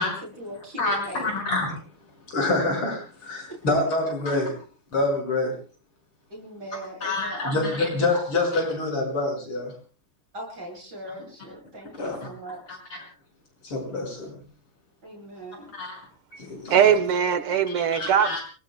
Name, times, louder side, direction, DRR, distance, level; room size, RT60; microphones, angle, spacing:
voice 1, 0.2-1.3 3.5-3.6 6.3-7.5 8.1-8.2 10.3-12.8 15.0-15.7, right 1 dB, 50° right, -1 dB, 8.3 m, -39 dB
voice 2, 0.8-1.8 2.3-4.5 4.9-5.5 7.0-9.7 12.0-12.3 12.7-12.8 13.6-14.4 15.7-16.0 16.3-16.8 17.7-18.4, left 2 dB, 80° left, 2 dB, 6.7 m, -26 dB
voice 3, 16.7-18.4, right 8 dB, 80° right, 11 dB, 2.2 m, -21 dB
29.5 x 20.0 x 2.2 m, 0.37 s
omnidirectional pair, 2.4 m